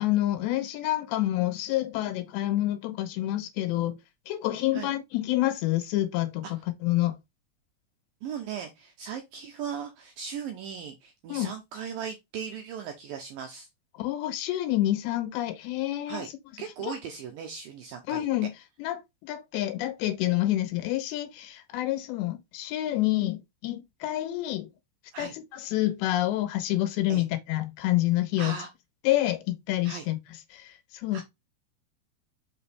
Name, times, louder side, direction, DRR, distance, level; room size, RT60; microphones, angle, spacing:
voice 1, 0.0-4.0 4.3-6.5 6.8-7.2 11.3-11.5 14.0-16.2 16.8-17.0 18.1-18.5 18.8-19.0 19.3-24.7 25.2-28.5 29.0-30.2 30.5-31.2, left 15 dB, 80° left, 3.2 m, -28 dB
voice 2, 8.2-13.7 16.1-16.3 16.6-18.2 25.1-25.3 27.1-27.2 28.4-28.7 29.8-30.1 31.1-31.2, right 7 dB, 80° right, 2.1 m, -38 dB
5.9 x 5.0 x 3.3 m
omnidirectional pair, 5.0 m